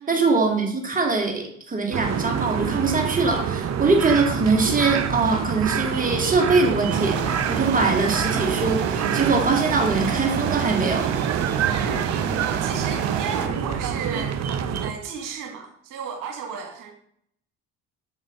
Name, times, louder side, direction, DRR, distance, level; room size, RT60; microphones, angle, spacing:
voice 1, 0.0-11.1, right 3 dB, 25° right, 2 dB, 2.4 m, -22 dB
sound 1, 1.9-14.9, right 8 dB, 50° right, 1.0 m, -27 dB
Applause, 5.8-14.2, left 2 dB, 15° left, 4.1 m, -41 dB
sound 2, 6.9-13.5, right 8 dB, 85° right, 0.9 m, -28 dB
voice 2, 11.8-12.1 12.6-14.4 14.8-16.9, right 5 dB, 65° right, 3 dB, 2.1 m, -33 dB
7.4 x 6.4 x 6.6 m, 0.66 s
hypercardioid pair, 55°, 34 cm